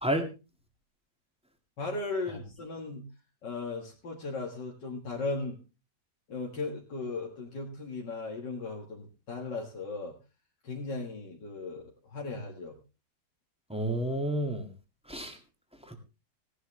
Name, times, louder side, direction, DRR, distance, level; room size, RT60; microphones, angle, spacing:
voice 1, 1.8-3.1 3.4-5.6 6.3-10.2 10.6-12.8, left 3 dB, 80° left, -2 dB, 2.5 m, -37 dB
voice 2, 13.7-14.7 15.1-15.4 15.8-15.9, right 1 dB, 5° right, 4 dB, 2.0 m, -30 dB
17.5 x 11.5 x 3.3 m, 0.29 s
omnidirectional pair, 1.9 m